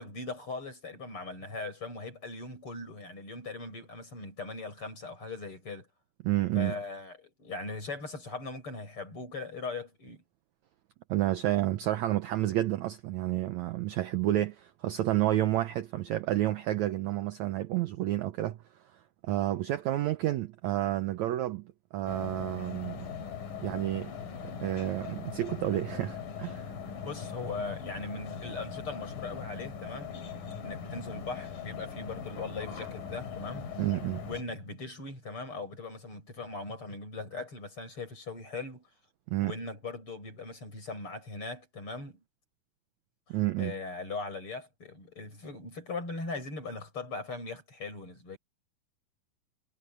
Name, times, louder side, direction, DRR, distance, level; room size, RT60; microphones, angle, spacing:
voice 1, 0.0-5.9 6.5-10.2 27.0-30.1 30.6-33.7 34.3-38.9 39.4-42.2 43.3-48.4, left 3 dB, 35° left, 8.0 m, -40 dB
voice 2, 6.2-6.7 11.1-18.6 19.2-23.1 23.6-24.2 24.4-26.7 33.8-34.3 39.3-39.5 43.3-43.8, right 14 dB, 85° right, 1.6 m, -30 dB
sound 1, 22.1-34.4, left 6 dB, 65° left, 5.0 m, -40 dB
omnidirectional pair, 4.3 m